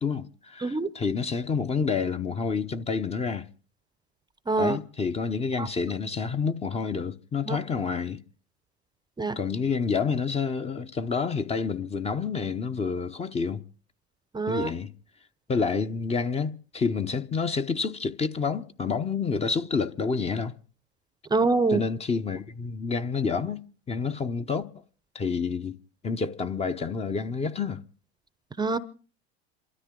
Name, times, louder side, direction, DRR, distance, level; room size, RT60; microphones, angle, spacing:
voice 1, 0.0-3.5 4.6-8.2 9.4-13.6 14.5-14.9 15.5-20.5 21.7-23.6 23.9-24.8 25.1-25.8 26.0-27.8, left 5 dB, 20° left, 0.8 m, -28 dB
voice 2, 4.5-4.8 5.6-5.7 7.5-7.6 9.2-9.4 14.3-14.7 21.3-21.8 28.6-28.8, right 3 dB, 15° right, 0.7 m, -24 dB
28.0 x 13.5 x 3.8 m
hypercardioid pair, 95°, 33 cm